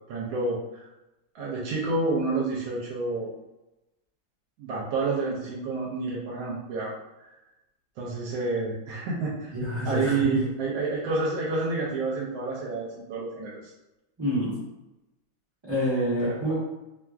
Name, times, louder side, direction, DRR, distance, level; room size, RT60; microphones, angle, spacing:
voice 1, 0.1-0.9 1.3-3.3 4.6-6.9 7.3-7.4 8.0-9.5 9.8-13.7 16.2-16.6, right 3 dB, 85° right, -4 dB, 1.4 m, -29 dB
voice 2, 9.5-10.4 14.2-14.6 15.6-16.6, equal, 20° right, -11 dB, 0.8 m, -27 dB
3.1 x 2.5 x 2.3 m, 0.97 s
omnidirectional pair, 2.1 m